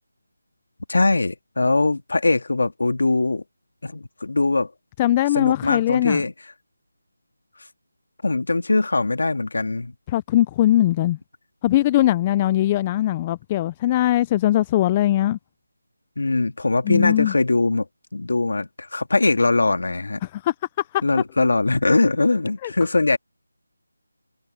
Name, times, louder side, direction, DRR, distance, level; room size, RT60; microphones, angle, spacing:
voice 1, 0.9-3.4 3.8-4.7 5.3-6.3 8.2-9.9 16.2-17.9 18.1-20.2 21.0-23.2, left 3 dB, 60° left, 2.1 m, -21 dB
voice 2, 5.0-6.2 10.1-11.2 11.6-15.4 16.9-17.3 20.3-20.5 20.9-21.0 22.6-22.7, left 14 dB, 10° left, 0.3 m, -20 dB
figure-of-eight pair, 175°, 0 cm